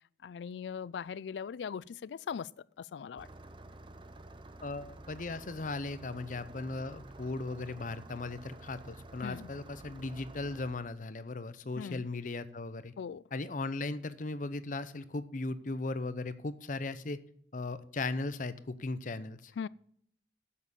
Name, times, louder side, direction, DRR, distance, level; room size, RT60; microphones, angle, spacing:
voice 1, 0.2-2.5 2.8-3.3 9.2-9.5 11.8-12.1 13.0-13.2 19.6-19.7, left 7 dB, 85° left, 0.3 m, -40 dB
Engine starting, 3.2-10.7, right 2 dB, 30° right, 0.7 m, -50 dB
voice 2, 4.6-12.9 13.3-17.2 17.5-19.5, left 3 dB, 50° left, 0.7 m, -37 dB
7.9 x 7.5 x 7.3 m
head